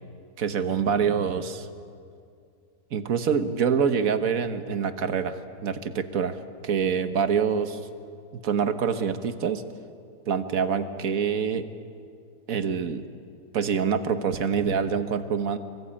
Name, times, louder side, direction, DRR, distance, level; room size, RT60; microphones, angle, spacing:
voice 1, 0.4-1.7 2.9-7.8 8.4-9.6 10.3-11.7 12.5-13.1 13.5-15.6, right 6 dB, 60° right, 9 dB, 1.6 m, -26 dB
24.0 x 23.5 x 8.8 m, 2.3 s
omnidirectional pair, 1.7 m